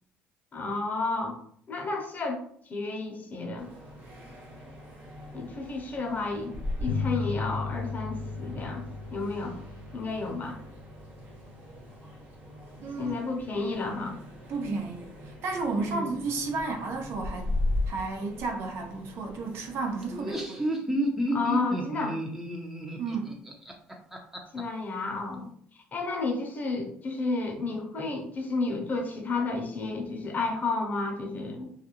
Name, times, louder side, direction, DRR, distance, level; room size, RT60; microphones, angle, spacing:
voice 1, 0.5-1.4 1.7-2.4 2.7-3.7 5.3-6.5 6.8-8.8 9.1-9.5 9.9-10.6 13.0-14.2 15.8-16.1 21.3-22.2 24.5-25.5 25.9-31.7, left 3 dB, 40° left, 2 dB, 0.7 m, -31 dB
sound 1, 3.6-20.3, left 1 dB, 50° right, 1.2 m, -39 dB
sound 2, 6.9-12.0, left 4 dB, 85° left, 0.3 m, -36 dB
voice 2, 12.8-13.4 14.5-17.6 17.9-20.7 23.0-23.4, right 3 dB, 65° right, 2 dB, 0.6 m, -33 dB
Laughter, 20.0-24.6, right 1 dB, 10° right, 0.5 m, -31 dB
2.4 x 2.1 x 2.9 m, 0.62 s
supercardioid pair, 80°, 5 cm